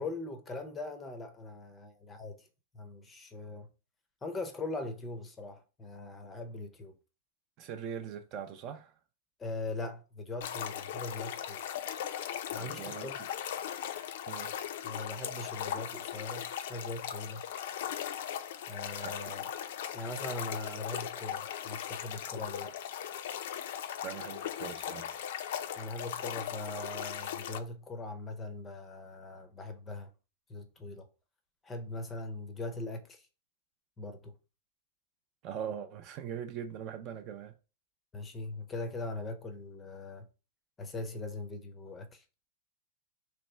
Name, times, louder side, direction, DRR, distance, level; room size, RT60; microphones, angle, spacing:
voice 1, 0.0-2.5 2.7-3.7 4.2-6.9 9.4-11.6 12.5-13.2 14.8-17.4 18.7-19.4 19.9-22.7 25.7-30.1 30.5-31.1 31.6-33.2 34.0-34.3 38.1-40.3 40.8-42.2, left 2 dB, 15° left, 0.6 m, -41 dB
voice 2, 7.6-8.9 12.6-13.1 14.3-14.6 19.0-19.4 24.0-25.2 35.4-37.5, right 8 dB, 35° right, 0.4 m, -41 dB
sound 1, 10.4-27.6, left 10 dB, 60° left, 0.5 m, -38 dB
3.2 x 3.2 x 4.2 m
supercardioid pair, 165°, 0 cm